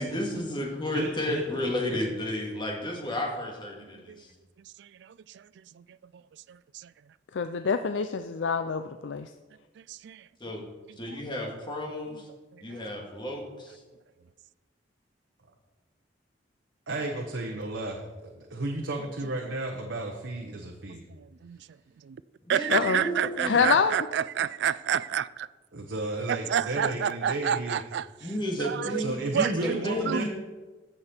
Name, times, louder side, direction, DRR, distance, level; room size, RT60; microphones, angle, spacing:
voice 1, 0.0-4.3 10.4-10.6 11.0-12.3 12.6-13.8 22.5-23.7 28.2-30.3, left 1 dB, 25° left, 0 dB, 2.1 m, -32 dB
voice 2, 0.9-2.0 16.9-21.0 25.7-27.8 29.0-30.3, right 2 dB, 85° right, 1 dB, 1.0 m, -33 dB
voice 3, 3.8-4.2 4.8-5.5 5.7-5.8 6.5-6.9 9.8-10.7 12.5-12.8 21.1-21.6 22.0-22.2 22.5-25.5 26.3-28.3 28.6-29.0 29.3-30.3, right 8 dB, 65° right, 17 dB, 0.3 m, -30 dB
voice 4, 7.3-9.3 22.7-23.0 23.4-24.0, left 5 dB, 75° left, 9 dB, 0.4 m, -26 dB
15.0 x 6.8 x 4.4 m, 1.3 s
head